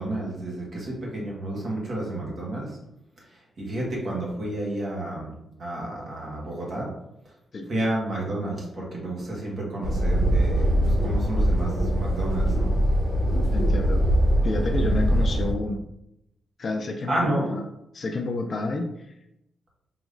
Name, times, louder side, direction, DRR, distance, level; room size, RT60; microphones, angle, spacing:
voice 1, 0.0-2.7 3.3-5.3 5.6-6.9 7.7-12.7 17.1-17.6, right 1 dB, 40° right, -3 dB, 1.3 m, -30 dB
sound 1, 9.8-15.5, equal, 60° right, 1.5 m, -22 dB
voice 2, 13.5-14.0 14.4-15.9 16.6-17.7 17.9-19.1, left 2 dB, 35° left, 5 dB, 0.3 m, -30 dB
4.9 x 3.0 x 2.5 m, 0.83 s
wide cardioid pair, 170°, 0 cm